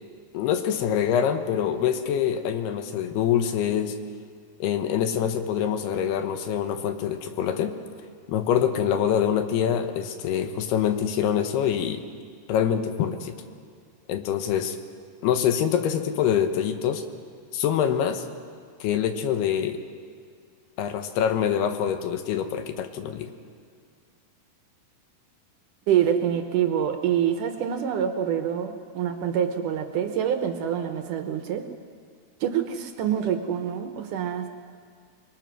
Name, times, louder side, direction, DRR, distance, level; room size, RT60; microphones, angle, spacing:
voice 1, 0.3-3.9 4.6-7.7 8.3-12.0 12.5-13.3 14.1-14.8 15.2-17.0 17.5-18.2 18.8-19.8 20.8-23.3, left 9 dB, 90° left, 7 dB, 3.3 m, -25 dB
voice 2, 25.9-31.6 32.4-34.5, right 9 dB, 70° right, 6 dB, 2.1 m, -26 dB
27.5 x 21.5 x 6.2 m, 2.1 s
omnidirectional pair, 4.4 m